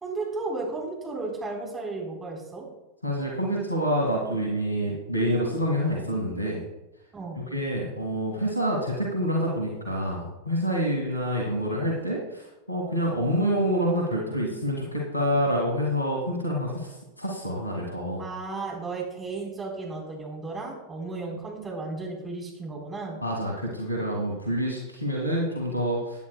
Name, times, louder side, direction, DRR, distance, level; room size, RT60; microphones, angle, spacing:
voice 1, 0.0-2.7 7.1-7.4 18.2-23.2, right 3 dB, 15° right, -1 dB, 3.8 m, -34 dB
voice 2, 3.0-6.6 7.4-18.2 23.2-26.3, equal, 85° left, -1 dB, 2.0 m, -27 dB
16.5 x 9.7 x 2.2 m, 0.98 s
figure-of-eight pair, 90°, 0 cm